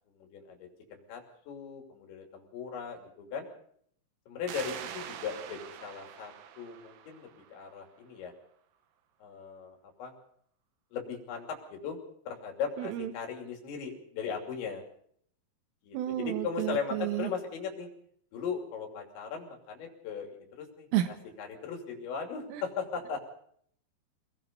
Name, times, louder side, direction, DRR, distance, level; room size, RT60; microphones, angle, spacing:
voice 1, 0.1-3.5 4.3-8.3 9.2-10.1 10.9-12.0 12.3-14.8 15.8-17.9 18.3-20.9 21.4-23.2, left 6 dB, 70° left, 2 dB, 5.0 m, -38 dB
sound 1, 4.5-7.8, right 9 dB, 70° right, 2.1 m, -44 dB
voice 2, 12.8-13.1 15.9-17.3 20.9-21.1 22.5-22.6, right 13 dB, 90° right, 7 dB, 3.9 m, -31 dB
26.0 x 19.0 x 5.3 m, 0.65 s
omnidirectional pair, 5.6 m